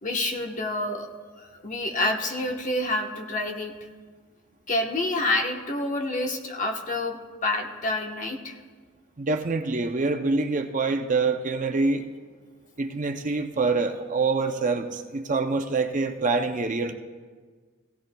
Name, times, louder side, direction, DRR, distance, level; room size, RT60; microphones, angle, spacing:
voice 1, 0.0-1.1 1.4-3.7 4.7-7.2 7.4-8.6, left 2 dB, 40° left, 3 dB, 1.1 m, -28 dB
voice 2, 9.2-12.1 12.8-16.9, right 3 dB, 40° right, 6 dB, 0.6 m, -25 dB
16.5 x 16.0 x 2.3 m, 1.5 s
head